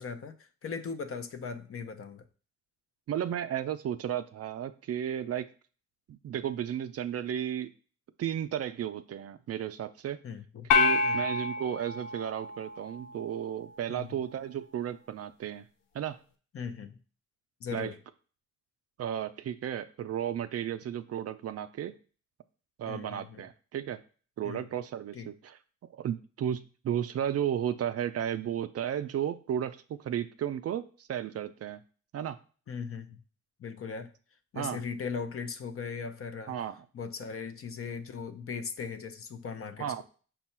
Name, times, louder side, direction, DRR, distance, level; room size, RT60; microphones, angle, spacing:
voice 1, 0.0-2.2 10.2-10.7 11.0-11.2 13.9-14.1 16.5-17.0 17.6-18.0 22.9-23.4 24.4-24.6 25.1-25.3 32.7-33.2 33.6-34.1 34.5-36.6 36.9-40.0, left 5 dB, 45° left, 10 dB, 0.6 m, -38 dB
voice 2, 3.1-5.5 6.1-7.7 8.2-10.2 10.7-15.7 15.9-16.2 17.7-17.9 19.0-21.9 22.8-24.0 24.4-25.6 25.9-31.8 32.1-32.4 34.5-34.8 36.5-36.8 39.8-40.0, right 10 dB, 50° right, 12 dB, 0.4 m, -34 dB
sound 1, 10.7-13.2, left 4 dB, 85° left, 0.6 m, -28 dB
5.5 x 2.3 x 4.2 m, 0.40 s
cardioid pair, 70°, 31 cm